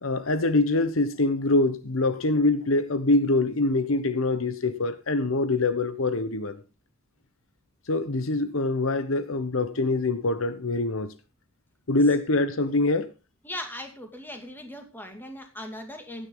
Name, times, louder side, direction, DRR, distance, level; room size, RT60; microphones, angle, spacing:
voice 1, 0.0-6.6 7.9-11.1 11.9-13.1, left 2 dB, 80° left, 1.1 m, -24 dB
voice 2, 13.4-16.3, left 1 dB, 10° left, 2.5 m, -39 dB
15.5 x 10.0 x 3.9 m
head